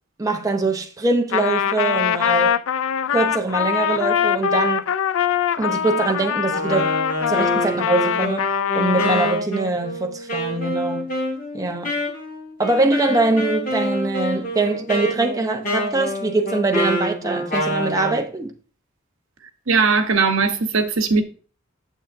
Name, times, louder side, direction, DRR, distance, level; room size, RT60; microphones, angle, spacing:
voice 1, 0.2-2.6 3.1-4.9 5.6-6.9 7.3-11.1 11.5-12.0 12.6-18.5, right 2 dB, 15° right, 0.7 m, -23 dB
Trumpet, 1.3-9.4, left 8 dB, 80° left, 0.4 m, -22 dB
Wind instrument woodwind instrument, 6.5-18.2, equal, 45° left, 4.1 m, -27 dB
voice 2, 19.7-21.2, right 4 dB, 75° right, 0.9 m, -19 dB
9.1 x 7.1 x 2.5 m
head